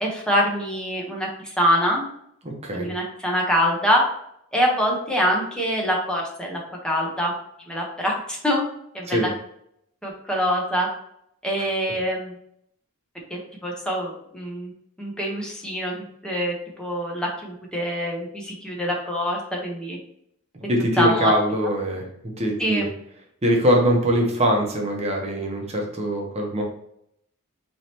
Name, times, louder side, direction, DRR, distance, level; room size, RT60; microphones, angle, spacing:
voice 1, 0.0-2.0 2.7-4.0 4.5-7.3 7.7-8.6 8.9-9.3 10.0-10.9 11.4-12.3 13.3-14.7 15.0-15.9 16.2-20.0 21.0-21.3 22.6-22.8, equal, 5° left, -2 dB, 1.0 m, -24 dB
voice 2, 2.4-2.9 9.1-9.3 20.6-22.9 23.4-26.6, equal, 30° right, 0 dB, 0.9 m, -23 dB
4.9 x 3.2 x 2.9 m, 0.73 s
head